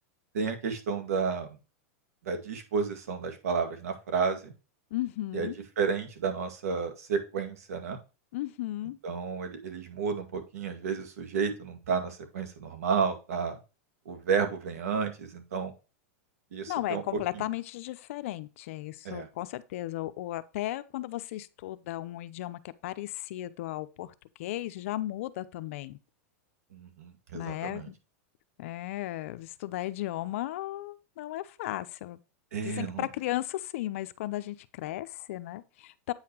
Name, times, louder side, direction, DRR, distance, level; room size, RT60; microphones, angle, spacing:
voice 1, 0.3-1.6 2.2-4.5 5.3-5.5 5.8-8.0 9.0-13.6 14.1-15.7 16.5-17.0 17.3-17.4 19.0-19.3 26.7-27.9 32.5-33.1, right 5 dB, 85° right, 2.0 m, -31 dB
voice 2, 4.9-5.6 8.3-9.0 16.7-24.1 24.4-26.0 27.3-27.9 28.6-32.2 32.6-36.1, left 15 dB, 60° left, 0.6 m, -35 dB
8.7 x 5.7 x 2.9 m
supercardioid pair, 140°, 8 cm